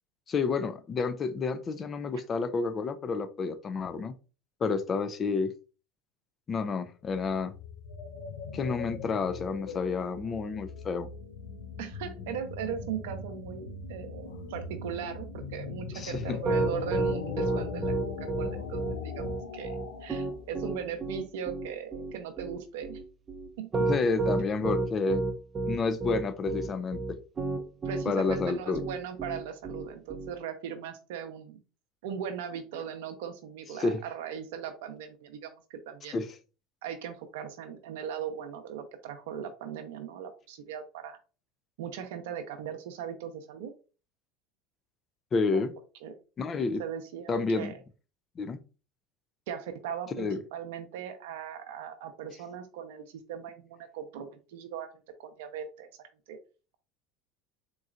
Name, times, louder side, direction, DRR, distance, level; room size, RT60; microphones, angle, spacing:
voice 1, 0.3-4.1 4.6-5.5 6.5-7.5 8.5-11.1 15.9-16.4 23.8-25.2 25.7-27.2 28.0-28.8 33.8-34.0 36.1-36.3 45.3-45.7 46.4-46.8 47.3-47.7 48.4-48.6 50.2-50.4, left 4 dB, 35° left, 0.5 m, -30 dB
sound 1, 7.0-21.2, left 5 dB, 85° left, 0.6 m, -40 dB
voice 2, 11.8-23.0 23.6-23.9 27.6-31.6 32.0-36.2 36.8-41.2 41.8-43.7 45.5-45.6 46.0-46.1 46.8-47.8 49.5-54.9 55.2-55.9 56.3-56.4, right 8 dB, 80° right, 0.6 m, -39 dB
Piano, 16.1-30.3, right 3 dB, 30° right, 0.6 m, -31 dB
3.9 x 3.0 x 2.4 m
hypercardioid pair, 90°, 0 cm